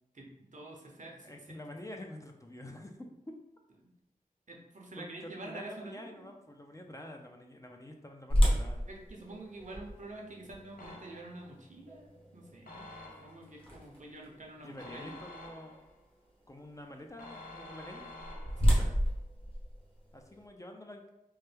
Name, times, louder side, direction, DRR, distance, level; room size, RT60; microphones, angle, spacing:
voice 1, 0.1-1.6 3.8-3.9 4.5-6.3 8.9-15.1 18.6-18.9, right 2 dB, 55° right, -1 dB, 0.7 m, -47 dB
voice 2, 1.2-3.3 5.0-8.9 14.6-15.8 16.5-18.1 20.1-21.0, left 1 dB, 20° left, 2 dB, 0.4 m, -47 dB
sound 1, 8.3-14.2 14.8-14.9 15.5-15.7 17.8-20.5, equal, 40° left, 0.9 m, -31 dB
sound 2, 10.8-11.5 12.7-13.6 14.8-16.0 17.2-18.8, left 2 dB, 75° left, 0.6 m, -49 dB
3.1 x 2.2 x 3.2 m, 0.91 s
wide cardioid pair, 45°, 15 cm